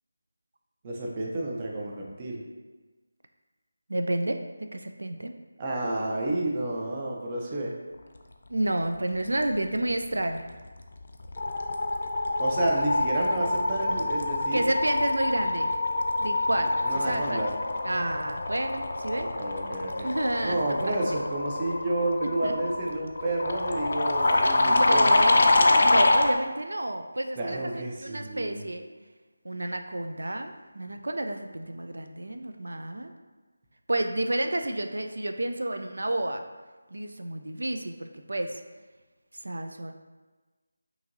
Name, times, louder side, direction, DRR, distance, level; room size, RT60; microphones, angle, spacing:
voice 1, 0.8-2.4 5.6-7.7 12.4-14.7 16.8-17.5 19.1-20.1 20.4-25.1 27.4-28.6, right 2 dB, 20° right, -2 dB, 0.4 m, -30 dB
voice 2, 3.9-4.4 4.7-5.4 8.5-10.5 14.5-15.7 16.2-17.4 17.8-19.3 20.0-20.6 20.8-21.2 22.2-22.5 24.6-25.5 25.8-27.6 28.0-28.9 29.4-33.1 33.9-36.4 36.9-38.6 39.4-39.9, right 1 dB, 85° right, 6 dB, 0.3 m, -30 dB
sound 1, 10.5-10.8 11.1-26.3, left 2 dB, 50° left, 0.4 m, -25 dB
5.6 x 2.6 x 2.6 m, 1.3 s
figure-of-eight pair, 175°, 0 cm